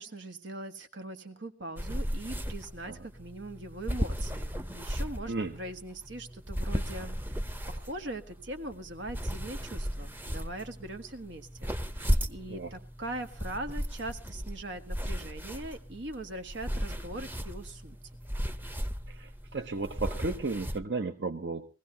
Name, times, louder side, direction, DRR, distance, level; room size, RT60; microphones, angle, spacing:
voice 1, 0.0-7.4 7.7-18.0, right 2 dB, 90° right, 6 dB, 1.6 m, -41 dB
sound 1, 1.8-20.8, equal, 10° right, 0.7 m, -36 dB
voice 2, 5.3-5.6 12.5-12.7 19.1-21.7, right 3 dB, 65° right, 6 dB, 0.9 m, -34 dB
22.0 x 16.0 x 2.8 m, 0.34 s
head